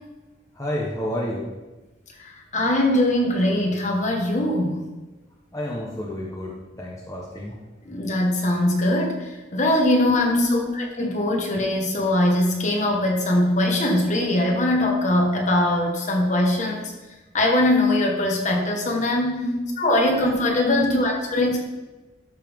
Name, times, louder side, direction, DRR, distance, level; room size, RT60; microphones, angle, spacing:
voice 1, 0.5-1.4 5.5-7.5 10.2-10.7 19.4-19.6 20.6-21.1, left 1 dB, 15° left, -4 dB, 1.0 m, -28 dB
voice 2, 2.2-4.8 7.8-10.4 10.8-16.9 17.3-19.4 19.8-21.6, left 1 dB, 40° left, 0 dB, 1.5 m, -21 dB
12.5 x 5.5 x 3.6 m, 1.1 s
head